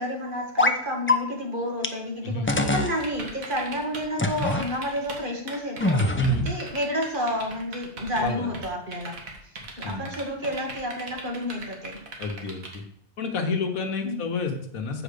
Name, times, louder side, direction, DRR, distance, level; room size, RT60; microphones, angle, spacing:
voice 1, 0.0-6.2 6.5-9.1 9.8-12.0 14.0-14.2, equal, 35° right, 0 dB, 2.0 m, -30 dB
sound 1, 0.6-0.8 1.1-1.2 1.8-1.9 2.5-3.0 4.2-4.7 5.8-6.5, left 2 dB, 20° left, 0.3 m, -23 dB
voice 2, 2.2-2.6 6.1-6.5 8.2-8.5 9.8-10.1 12.2-12.8 13.2-15.0, left 2 dB, 75° left, 5 dB, 1.5 m, -29 dB
sound 2, 3.0-4.1 4.3-5.2 5.5-8.3 8.5-12.8, right 3 dB, 70° right, 2.0 m, -39 dB
7.9 x 5.0 x 6.7 m, 0.67 s
omnidirectional pair, 1.5 m